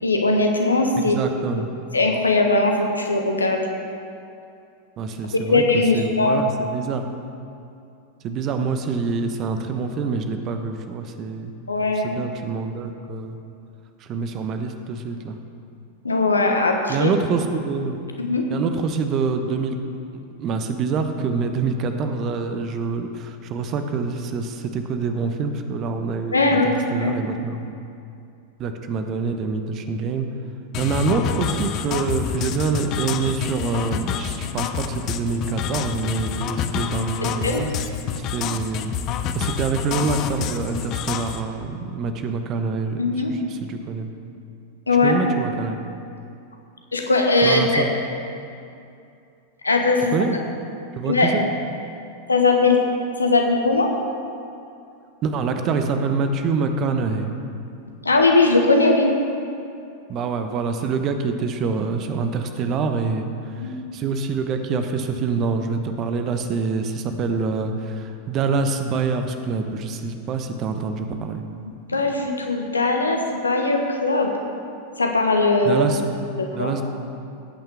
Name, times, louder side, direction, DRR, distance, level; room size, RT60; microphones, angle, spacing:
voice 1, 0.0-1.3 1.9-3.6 5.5-6.4 11.7-12.2 16.0-17.1 18.2-18.4 26.3-27.1 37.2-37.6 43.0-43.3 44.9-45.2 46.9-47.8 49.6-50.1 51.1-51.3 52.3-52.8 53.2-53.9 58.0-59.1 63.6-63.7 71.9-74.3 75.0-75.9 76.4-76.8, left 3 dB, 80° left, 3 dB, 1.2 m, -19 dB
voice 2, 1.0-1.7 5.0-5.6 5.9-7.0 8.2-11.5 12.0-13.4 14.0-15.4 16.9-18.0 18.5-19.8 20.4-27.7 28.6-30.3 30.8-37.7 38.1-38.9 39.3-44.1 45.0-45.9 47.4-47.8 50.1-50.4 50.9-51.5 55.2-57.3 60.1-71.4 75.6-76.0 76.5-76.8, right 4 dB, 35° right, 6 dB, 1.0 m, -26 dB
sound 1, 30.7-41.4, left 8 dB, 35° left, 0.6 m, -28 dB
16.5 x 9.0 x 3.5 m, 2.5 s
figure-of-eight pair, 90°, 0 cm